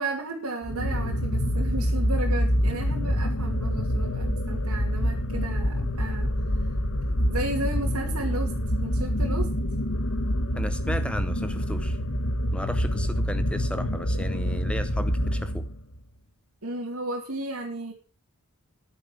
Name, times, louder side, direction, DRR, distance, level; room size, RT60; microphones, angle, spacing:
voice 1, 0.0-6.3 7.2-8.5 8.8-9.5 16.6-17.9, right 2 dB, 90° right, -1 dB, 2.7 m, -33 dB
sound 1, 0.6-16.0, equal, 75° left, 1.7 m, -26 dB
voice 2, 10.6-12.0 12.5-15.7, equal, 5° left, 11 dB, 0.7 m, -34 dB
10.5 x 9.1 x 6.0 m, 0.35 s
head